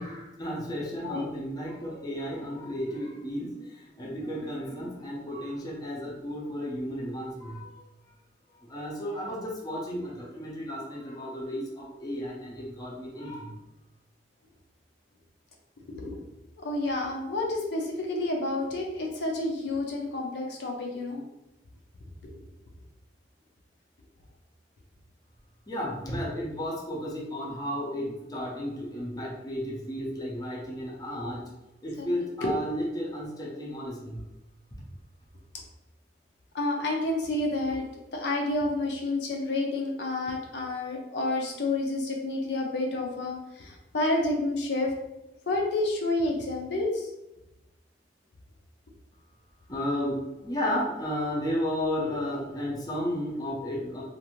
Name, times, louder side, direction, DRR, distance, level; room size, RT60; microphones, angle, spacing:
voice 1, 0.0-7.7 8.6-13.5 25.7-31.5 31.8-34.2 49.7-54.0, equal, 20° left, -4 dB, 0.6 m, -33 dB
voice 2, 16.6-21.2 32.0-32.1 32.4-32.5 36.5-37.8 38.1-44.9 45.5-47.0, left 2 dB, 75° left, 0 dB, 0.6 m, -29 dB
2.5 x 2.5 x 2.9 m, 0.93 s
head